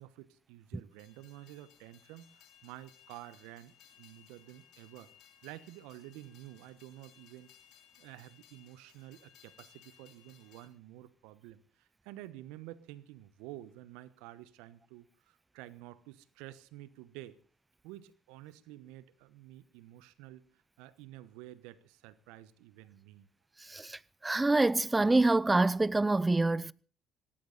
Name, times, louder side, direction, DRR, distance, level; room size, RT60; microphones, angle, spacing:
voice 1, 0.0-5.1 5.4-7.5 8.0-17.4 17.8-23.3, right 15 dB, 75° right, 1.1 m, -50 dB
Train, 0.9-10.7, left 10 dB, 70° left, 3.7 m, -62 dB
voice 2, 23.6-26.7, right 2 dB, 15° right, 0.7 m, -26 dB
19.0 x 17.0 x 4.1 m
hypercardioid pair, 60°, 0 cm